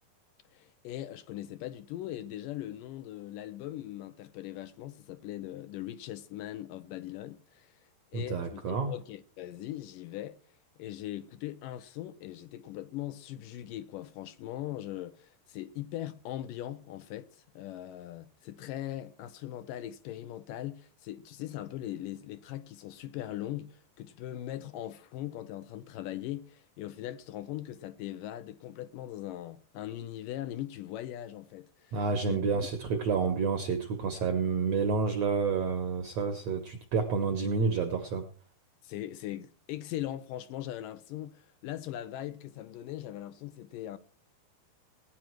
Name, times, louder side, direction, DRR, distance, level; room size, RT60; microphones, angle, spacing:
voice 1, 0.5-7.8 8.1-10.4 10.8-32.4 38.8-44.0, left 13 dB, 75° left, 2.1 m, -40 dB
voice 2, 8.1-8.9 31.9-38.3, right 5 dB, 65° right, 1.7 m, -29 dB
18.5 x 10.0 x 4.6 m
omnidirectional pair, 4.5 m